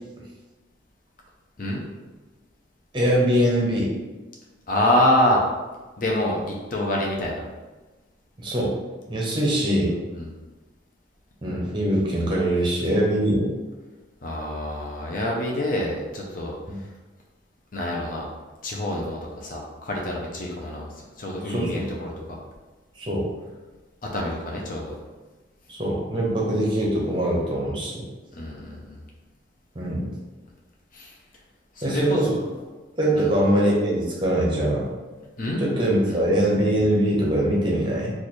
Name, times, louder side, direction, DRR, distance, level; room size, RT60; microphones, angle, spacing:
voice 1, 2.9-3.9 8.4-8.7 9.1-10.0 11.4-13.5 21.4-21.8 23.0-23.3 25.7-28.1 29.7-30.1 31.8-32.3 33.0-34.9 35.6-38.1, right 1 dB, 25° right, -3 dB, 0.8 m, -22 dB
voice 2, 4.7-5.4 6.0-7.4 10.1-10.3 14.2-16.6 17.7-18.3 18.6-22.4 24.0-25.0 28.3-29.0 30.9-31.2 31.8-32.2 33.1-33.3 35.4-35.6 36.1-36.3, left 1 dB, 45° left, -2 dB, 0.6 m, -26 dB
3.2 x 2.5 x 4.2 m, 1.2 s
head